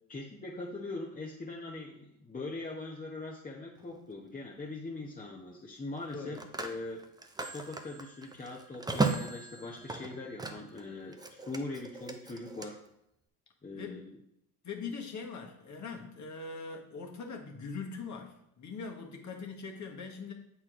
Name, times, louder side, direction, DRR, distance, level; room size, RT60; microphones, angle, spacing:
voice 1, 0.1-7.0 7.4-12.8 13.6-14.1, left 2 dB, 15° left, -3 dB, 1.0 m, -41 dB
Telephone, 3.8-4.0 6.0-10.8 11.1-12.7, right 3 dB, 10° right, 0.6 m, -36 dB
voice 2, 13.7-14.1 14.6-20.3, left 4 dB, 35° left, 1 dB, 1.4 m, -41 dB
7.6 x 4.3 x 3.7 m, 0.78 s
hypercardioid pair, 65°, 47 cm